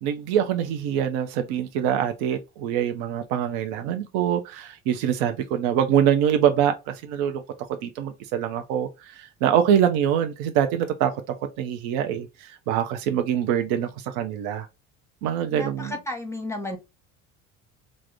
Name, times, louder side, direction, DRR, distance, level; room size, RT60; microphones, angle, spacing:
voice 1, 0.0-14.7 15.2-15.9, right 9 dB, 70° right, 0.6 m, -24 dB
voice 2, 15.5-16.8, left 1 dB, 5° left, 0.9 m, -33 dB
3.5 x 2.1 x 3.2 m
hypercardioid pair, 60°, 41 cm